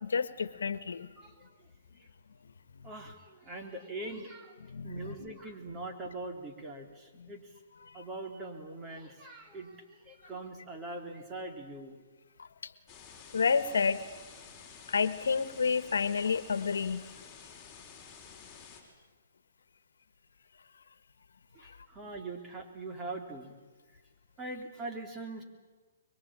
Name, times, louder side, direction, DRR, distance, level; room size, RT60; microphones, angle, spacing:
voice 1, 0.0-1.1 2.7-2.9 4.7-5.3 7.2-7.3 7.8-8.0 12.4-12.7 13.3-14.1 14.9-17.1 21.6-21.8, left 5 dB, 80° left, 14 dB, 1.4 m, -30 dB
voice 2, 1.2-1.7 1.9-2.1 2.8-4.6 4.8-7.6 7.9-12.0 21.5-23.6 23.9-24.0 24.4-25.4, right 2 dB, 20° right, 3 dB, 3.6 m, -42 dB
sound 1, 12.9-18.8, left 6 dB, 15° left, 5.4 m, -51 dB
23.5 x 23.0 x 9.0 m, 1.3 s
hypercardioid pair, 145°, 0 cm